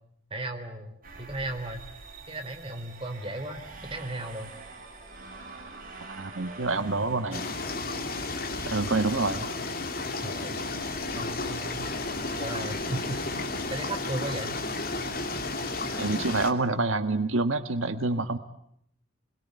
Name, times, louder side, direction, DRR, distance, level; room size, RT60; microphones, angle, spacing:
voice 1, 0.3-1.8 2.3-4.5 10.2-10.6 11.1-11.9 12.4-14.6, right 1 dB, 25° right, 5 dB, 3.3 m, -36 dB
sound 1, 1.0-16.2, right 3 dB, 40° right, 4.3 m, -47 dB
voice 2, 6.1-7.4 8.7-9.5 16.0-18.4, right 3 dB, 75° right, 9 dB, 1.4 m, -27 dB
sound 2, 7.3-16.5, left 3 dB, 45° left, 2.8 m, -33 dB
28.0 x 22.0 x 9.4 m, 0.73 s
head